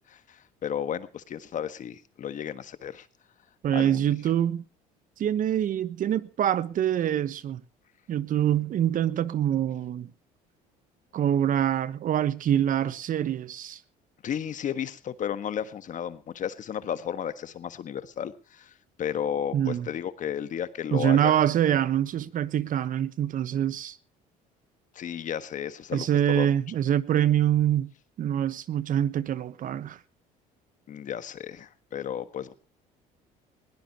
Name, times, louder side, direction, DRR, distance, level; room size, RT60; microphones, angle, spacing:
voice 1, 0.1-3.1 3.7-4.0 14.2-21.3 24.9-26.5 30.9-32.5, left 9 dB, 50° left, 1.5 m, -33 dB
voice 2, 3.6-4.6 5.2-7.6 8.1-10.1 11.1-13.8 19.5-19.9 20.9-24.0 25.9-27.9 28.2-30.0, right 10 dB, 50° right, 1.1 m, -25 dB
20.5 x 17.5 x 2.9 m
supercardioid pair, 95°, 17 cm